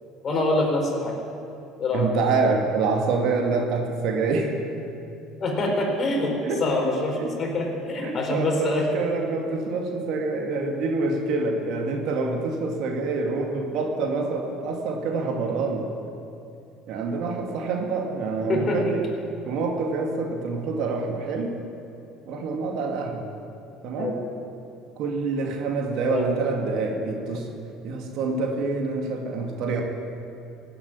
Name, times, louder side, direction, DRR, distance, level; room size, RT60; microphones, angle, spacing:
voice 1, 0.2-1.1 1.8-2.1 5.4-6.3 6.6-8.8 18.5-18.9 24.0-24.2 26.0-26.3, left 2 dB, 40° left, 0 dB, 4.4 m, -25 dB
voice 2, 1.9-4.5 6.1-6.7 7.2-7.3 8.0-15.9 16.9-19.0 19.5-21.6 22.2-23.3 23.8-24.2 25.0-27.5 27.8-29.8, right 3 dB, 65° right, 2 dB, 2.3 m, -26 dB
16.0 x 8.7 x 9.8 m, 2.7 s
hypercardioid pair, 70°, 0 cm